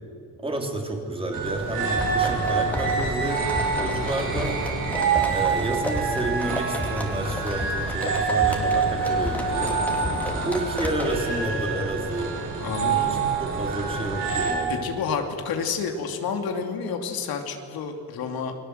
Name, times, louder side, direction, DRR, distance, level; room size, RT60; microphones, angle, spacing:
voice 1, 0.4-3.5 3.8-4.6 5.3-9.8 10.4-12.3 12.8-14.8, right 1 dB, 15° right, 1 dB, 3.3 m, -30 dB
sound 1, 1.3-14.5, right 5 dB, 60° right, 7.5 m, -26 dB
sound 2, 1.8-11.2, equal, 5° left, 2.8 m, -33 dB
voice 2, 12.6-13.2 14.7-18.6, left 6 dB, 90° left, 4 dB, 2.7 m, -30 dB
29.0 x 21.5 x 7.9 m, 2.7 s
cardioid pair, 160°, 35 cm